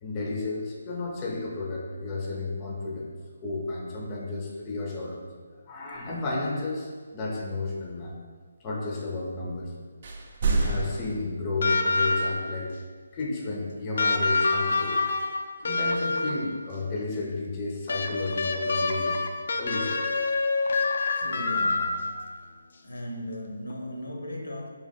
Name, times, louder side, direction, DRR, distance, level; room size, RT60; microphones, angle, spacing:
voice 1, 0.0-3.1 3.4-5.2 5.7-8.2 8.6-9.7 10.6-12.7 13.1-15.0 15.6-19.2 19.6-20.0, left 3 dB, 20° left, -2 dB, 0.6 m, -32 dB
sound 1, 10.0-11.2, right 3 dB, 45° right, 0.6 m, -27 dB
sound 2, 11.6-12.6 14.0-16.5 17.9-22.3 23.7-23.8, left 3 dB, 60° left, 0.4 m, -26 dB
voice 2, 21.1-22.5 22.8-24.7, left 1 dB, 80° left, 1 dB, 0.8 m, -37 dB
3.6 x 2.8 x 4.1 m, 1.5 s
figure-of-eight pair, 155°, 0 cm